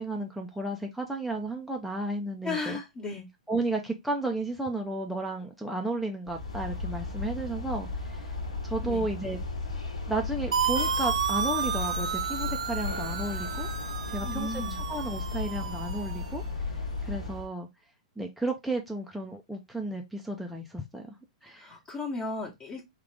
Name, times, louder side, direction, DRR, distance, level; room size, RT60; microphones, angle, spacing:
voice 1, 0.0-2.8 3.5-8.3 8.6-9.4 10.1-13.7 14.1-14.6 14.9-17.7 18.2-21.1 21.4-21.7, right 2 dB, ahead, 0.6 m, -33 dB
voice 2, 2.4-3.3 8.8-9.1 14.2-14.8 21.5-22.8, left 3 dB, 25° left, 1.2 m, -35 dB
sound 1, 6.3-17.5, left 3 dB, 85° left, 1.2 m, -35 dB
sound 2, 10.5-16.3, right 7 dB, 80° right, 0.4 m, -32 dB
3.5 x 2.4 x 3.4 m
hypercardioid pair, 110°, 4 cm